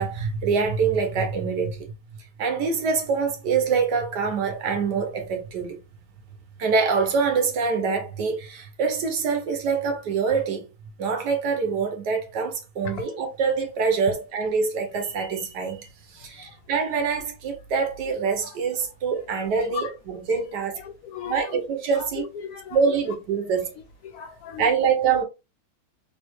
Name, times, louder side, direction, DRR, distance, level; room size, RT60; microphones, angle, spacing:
voice 1, 0.0-1.9 2.4-5.8 6.6-10.6 11.0-20.8 21.3-22.2 22.7-23.7 24.6-25.2, right 5 dB, 75° right, 1.5 m, -25 dB
voice 2, 16.2-16.6 18.4-18.6 19.6-19.9 20.5-21.7 21.9-22.8 24.0-24.7, left 8 dB, 70° left, 1.0 m, -37 dB
3.4 x 3.0 x 3.0 m
omnidirectional pair, 1.9 m